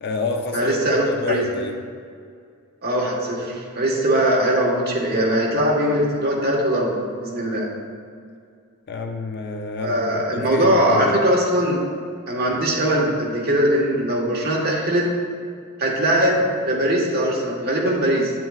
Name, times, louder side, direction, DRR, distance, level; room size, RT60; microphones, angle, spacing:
voice 1, 0.0-1.8 8.9-11.1, left 3 dB, 50° left, 3 dB, 0.6 m, -29 dB
voice 2, 0.5-1.4 2.8-7.7 9.8-11.8 12.3-15.1 15.8-18.3, right 1 dB, 50° right, -2 dB, 1.4 m, -21 dB
9.0 x 7.7 x 2.4 m, 2.2 s
head